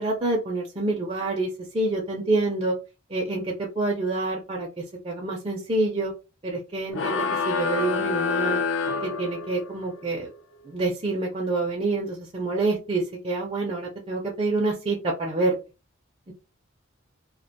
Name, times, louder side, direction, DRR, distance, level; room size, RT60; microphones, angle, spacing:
voice 1, 0.0-2.7 3.1-6.1 6.4-8.6 9.0-10.3 10.7-15.6 16.3-16.4, right 2 dB, 30° right, -1 dB, 0.4 m, -27 dB
sound 1, 6.9-9.8, left 4 dB, 65° left, 0.4 m, -27 dB
2.3 x 2.1 x 2.7 m, 0.29 s
head